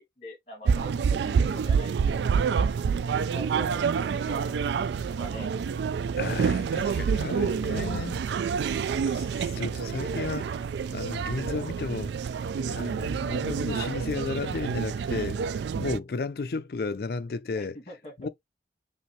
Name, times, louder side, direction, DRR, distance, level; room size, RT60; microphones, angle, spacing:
voice 1, 0.0-1.9 2.4-2.5 3.3-4.6 5.1-5.5 7.1-7.3 17.5-18.3, equal, 35° left, 2.2 m, -44 dB
sound 1, 0.7-16.0, right 6 dB, 80° right, 0.3 m, -28 dB
voice 2, 6.2-8.2 8.9-10.6 10.9-12.1 12.6-15.4 15.8-17.8 18.2-18.3, left 4 dB, 60° left, 0.4 m, -33 dB
5.6 x 2.7 x 3.1 m
head